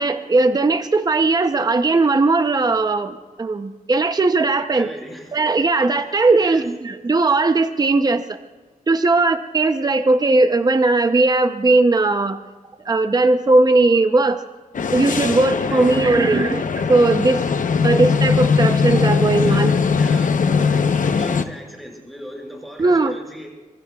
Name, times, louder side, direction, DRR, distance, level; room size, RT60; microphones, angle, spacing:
voice 1, 0.0-4.9 5.3-8.4 8.9-12.4 12.8-14.4 14.9-17.4 17.8-19.7 22.8-23.1, right 3 dB, 25° right, 8 dB, 0.7 m, -18 dB
voice 2, 4.7-5.4 6.0-6.7 15.7-16.5 19.4-23.5, equal, ahead, -1 dB, 5.8 m, -38 dB
sound 1, 14.7-21.4, left 5 dB, 65° left, 0.8 m, -20 dB
25.0 x 23.5 x 2.4 m, 1.3 s
wide cardioid pair, 120°, 15 cm